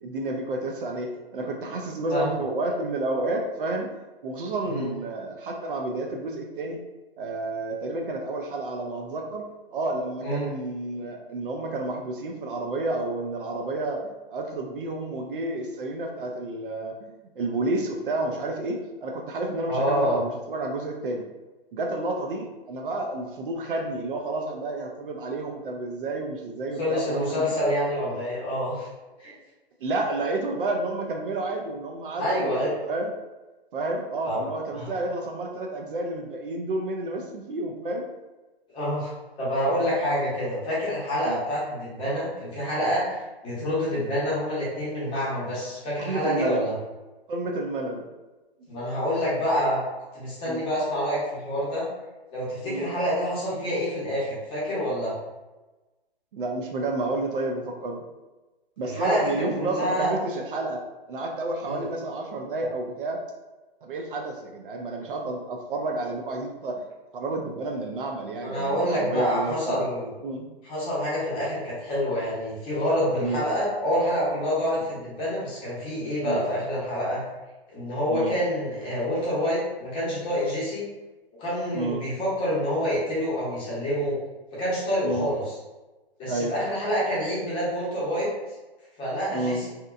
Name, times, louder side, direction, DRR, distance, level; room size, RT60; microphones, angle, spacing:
voice 1, 0.0-3.9 4.2-6.8 7.2-9.4 9.7-17.1 17.4-21.2 21.7-27.5 29.8-33.1 33.7-38.1 41.3-41.4 46.1-46.7 47.3-48.1 50.5-50.6 52.6-52.9 56.3-58.0 58.8-60.8 61.1-63.2 63.8-66.8 67.1-69.9 70.2-70.5 73.2-73.4 76.3-76.4 78.1-78.3 81.7-82.0 85.0-85.3 86.3-86.5 89.3-89.6, right 2 dB, 55° right, 1 dB, 0.4 m, -30 dB
voice 2, 19.7-20.2 26.8-28.9 29.2-29.3 32.2-32.8 34.2-34.4 34.7-34.9 38.7-39.1 39.4-46.7 48.7-49.8 50.1-51.8 52.3-55.1 58.8-60.1 61.6-61.8 68.4-70.1 70.6-77.2 77.7-80.8 81.4-84.2 84.5-85.6 86.2-88.3 89.0-89.7, equal, 15° left, -8 dB, 0.8 m, -27 dB
2.8 x 2.1 x 2.3 m, 1.1 s
hypercardioid pair, 135°, 31 cm